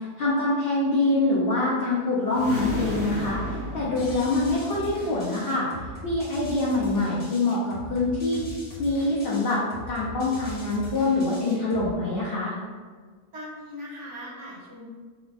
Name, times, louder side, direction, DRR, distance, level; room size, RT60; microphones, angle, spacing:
voice 1, 0.0-5.7 6.0-8.5 8.8-9.6 9.9-12.5, left 2 dB, 85° left, -6 dB, 0.5 m, -25 dB
sound 1, 2.3-4.9, equal, 20° left, 0.4 m, -33 dB
sound 2, 4.0-12.0, right 1 dB, 45° left, 0.8 m, -41 dB
voice 2, 13.3-14.8, equal, 60° right, -5 dB, 0.9 m, -39 dB
2.9 x 2.4 x 3.4 m, 1.5 s
omnidirectional pair, 1.7 m